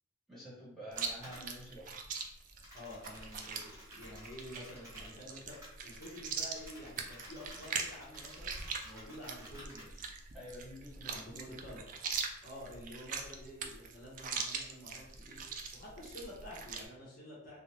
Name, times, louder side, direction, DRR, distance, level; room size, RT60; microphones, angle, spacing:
voice 1, 0.3-1.9 10.3-11.5, equal, ahead, -10 dB, 1.2 m, -49 dB
Chewing mastication, 0.9-16.9, right 5 dB, 40° right, 0.3 m, -42 dB
sound 1, 1.0-1.5 2.1-2.2 2.6-9.8, equal, 15° right, 0.8 m, -54 dB
voice 2, 2.7-10.1 11.0-11.9 12.4-17.6, equal, 45° left, -6 dB, 0.9 m, -49 dB
3.6 x 2.0 x 2.8 m, 0.84 s
head